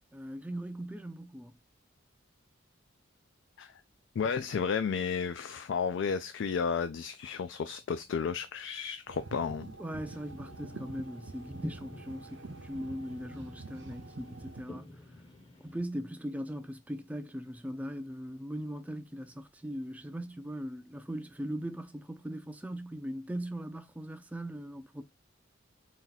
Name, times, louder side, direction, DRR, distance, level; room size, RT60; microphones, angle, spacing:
voice 1, 0.1-1.6 9.8-14.9 15.6-25.0, equal, 5° right, 0.4 m, -39 dB
voice 2, 4.2-9.7, left 6 dB, 65° left, 0.3 m, -32 dB
sound 1, 9.1-14.6, right 3 dB, 60° right, 0.5 m, -46 dB
sound 2, 10.0-15.8, left 1 dB, 25° left, 0.7 m, -48 dB
4.1 x 2.3 x 3.9 m
head